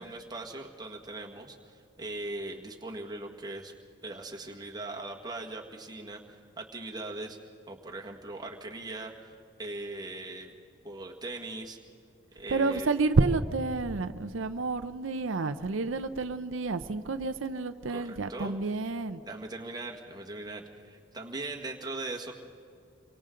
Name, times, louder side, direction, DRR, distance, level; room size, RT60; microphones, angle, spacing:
voice 1, 0.0-3.7 4.0-7.4 7.7-10.5 10.8-11.8 12.3-12.9 17.9-18.5 19.3-22.3, right 2 dB, 20° right, 0 dB, 1.7 m, -40 dB
voice 2, 12.5-19.2, right 3 dB, 85° right, 9 dB, 0.7 m, -29 dB
28.0 x 24.5 x 3.8 m, 2.4 s
head